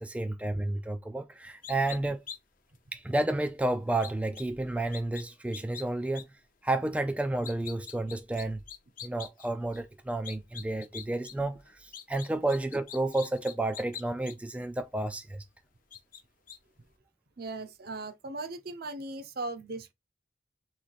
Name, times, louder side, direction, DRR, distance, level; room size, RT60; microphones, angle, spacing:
voice 1, 0.0-2.2 2.9-6.3 6.6-8.6 9.0-15.4, right 2 dB, 5° right, 0.3 m, -31 dB
sound 1, 1.6-2.0 2.3-2.4 2.8-2.9 4.0-4.4 4.9-5.2 5.5-5.8 6.2-6.3 7.3-9.5 9.7-9.8 10.2-11.3 11.6-14.3 15.0-15.1 15.9-16.2 16.5-16.6, left 8 dB, 50° left, 0.7 m, -43 dB
voice 2, 17.4-19.9, right 2 dB, 55° right, 0.7 m, -38 dB
3.9 x 3.1 x 4.1 m
head